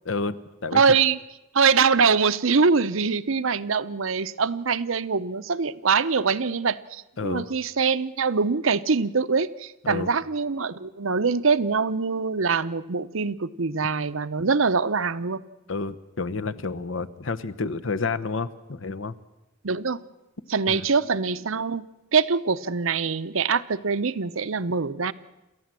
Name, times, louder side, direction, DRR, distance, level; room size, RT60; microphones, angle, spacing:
voice 1, 0.0-0.8 7.2-7.5 9.8-10.1 15.7-19.1 20.7-20.9, left 4 dB, 70° left, 13 dB, 0.9 m, -30 dB
voice 2, 0.7-1.2 1.5-15.4 19.6-20.0 20.5-25.1, right 5 dB, 80° right, 14 dB, 0.8 m, -23 dB
28.0 x 14.5 x 7.6 m, 0.99 s
head